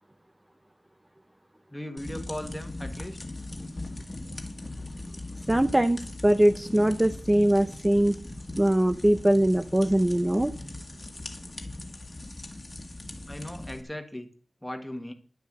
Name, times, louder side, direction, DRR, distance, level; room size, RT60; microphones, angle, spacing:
voice 1, 1.7-3.2 13.3-14.3 14.6-15.1, left 1 dB, 5° left, 5 dB, 1.8 m, -37 dB
sound 1, 2.0-13.8, left 2 dB, 25° left, 1.7 m, -40 dB
voice 2, 5.5-8.2 8.6-10.5, right 1 dB, 15° right, 9 dB, 0.6 m, -22 dB
11.5 x 7.0 x 7.6 m, 0.42 s
wide cardioid pair, 120°, 0 cm